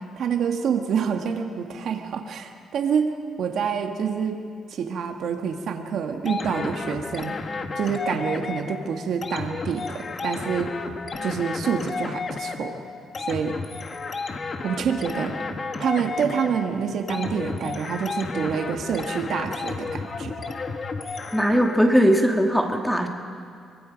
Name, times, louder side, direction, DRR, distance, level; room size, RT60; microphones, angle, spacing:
voice 1, 0.2-4.4 4.7-7.4 7.7-10.7 11.2-12.8 13.2-13.6 14.6-15.4 15.8-20.3, right 7 dB, 70° right, 4 dB, 1.6 m, -27 dB
sound 1, 6.3-22.0, left 4 dB, 40° left, 1.6 m, -32 dB
voice 2, 21.3-23.1, equal, 5° left, 3 dB, 1.8 m, -19 dB
23.5 x 23.0 x 5.2 m, 2.4 s
cardioid pair, 90°, 0 cm